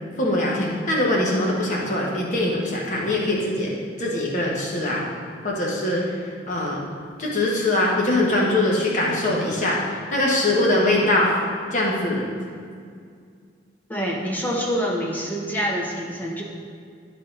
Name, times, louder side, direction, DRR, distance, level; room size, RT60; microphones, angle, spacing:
voice 1, 0.2-3.7 4.0-5.0 5.4-6.0 6.5-6.8 7.2-11.3 11.7-12.2, left 1 dB, 40° left, -4 dB, 1.4 m, -22 dB
voice 2, 13.9-16.4, equal, 10° left, -2 dB, 0.9 m, -26 dB
12.0 x 4.1 x 4.1 m, 2.2 s
head